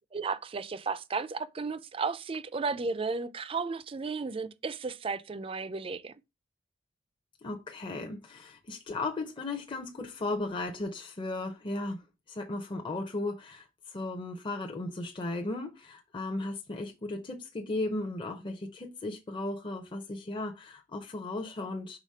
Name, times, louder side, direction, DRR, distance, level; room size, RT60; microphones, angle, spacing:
voice 1, 0.1-6.1, right 4 dB, 25° right, 0.4 m, -34 dB
voice 2, 7.4-22.0, left 2 dB, 25° left, 0.6 m, -36 dB
5.0 x 3.4 x 5.5 m
head